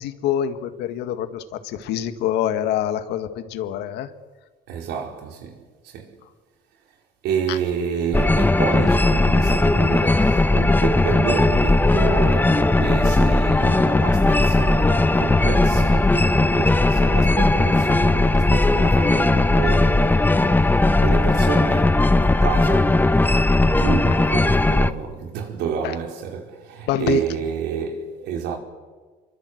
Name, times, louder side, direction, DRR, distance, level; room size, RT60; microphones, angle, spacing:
voice 1, 0.0-4.1 7.5-7.6 25.8-25.9 26.9-27.2, left 10 dB, 85° left, 1.9 m, -25 dB
voice 2, 4.7-6.1 7.2-20.1 20.9-23.1 23.6-28.6, right 7 dB, 85° right, 4.7 m, -29 dB
sound 1, 8.1-24.9, left 2 dB, 10° left, 1.1 m, -18 dB
26.0 x 24.0 x 8.0 m
cardioid pair, 110°, 17 cm